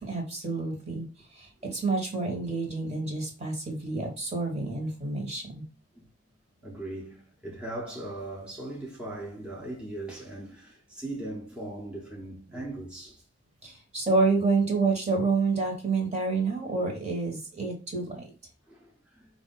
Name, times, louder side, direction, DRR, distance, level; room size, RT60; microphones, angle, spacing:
voice 1, 0.0-5.6 13.6-18.3, right 3 dB, 35° right, 1.3 m, -28 dB
voice 2, 6.6-13.2 18.2-18.3 18.7-19.3, right 1 dB, 5° right, 0.9 m, -39 dB
4.7 x 2.5 x 3.9 m
head